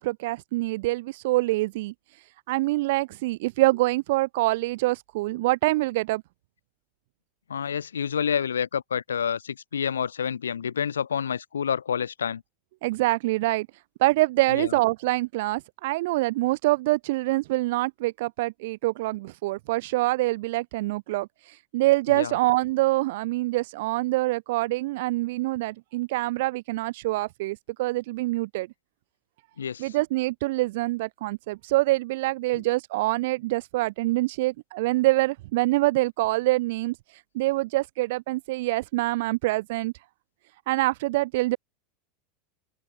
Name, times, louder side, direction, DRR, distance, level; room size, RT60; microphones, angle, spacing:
voice 1, 0.0-1.9 2.5-6.2 12.8-13.7 14.0-28.7 29.8-39.9 40.7-41.6, right 19 dB, 60° right, 0.8 m, -25 dB
voice 2, 7.5-12.4 14.5-14.7 22.1-22.3 29.6-29.9, left 7 dB, 75° left, 2.5 m, -28 dB
open air
figure-of-eight pair, 80°, 0 cm